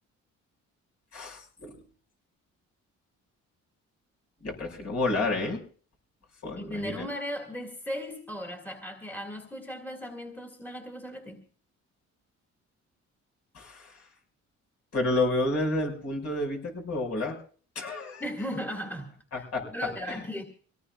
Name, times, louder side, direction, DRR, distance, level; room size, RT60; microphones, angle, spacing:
voice 1, 1.1-1.7 4.4-5.6 6.4-7.1 13.5-13.9 14.9-17.4 17.8-18.2 19.3-19.6 20.1-20.2, left 2 dB, 55° left, 0 dB, 5.7 m, -30 dB
voice 2, 6.5-11.4 18.2-20.4, equal, 5° left, 2 dB, 2.1 m, -37 dB
24.5 x 18.0 x 2.4 m, 0.43 s
cardioid pair, 90°, 30 cm